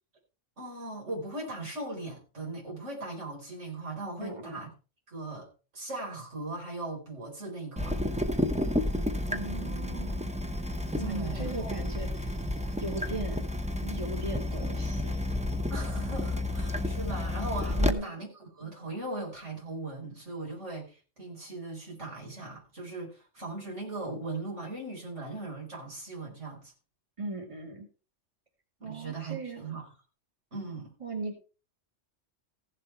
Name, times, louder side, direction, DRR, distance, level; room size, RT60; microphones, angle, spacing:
voice 1, 0.6-4.7 5.1-5.5 5.7-8.0 11.0-11.9 15.7-18.3 18.5-26.7 28.8-29.9 30.5-30.9, right 2 dB, 80° right, 4.8 m, -39 dB
voice 2, 4.2-4.6 9.3-10.3 10.9-12.3 12.8-13.4 13.8-15.1 17.8-18.1 27.2-27.9 28.8-29.8 31.0-31.4, right 2 dB, 25° right, 2.4 m, -38 dB
Water tap faucet / Drip, 7.8-17.9, left 1 dB, 5° right, 0.8 m, -31 dB
15.5 x 7.5 x 4.5 m
omnidirectional pair, 1.2 m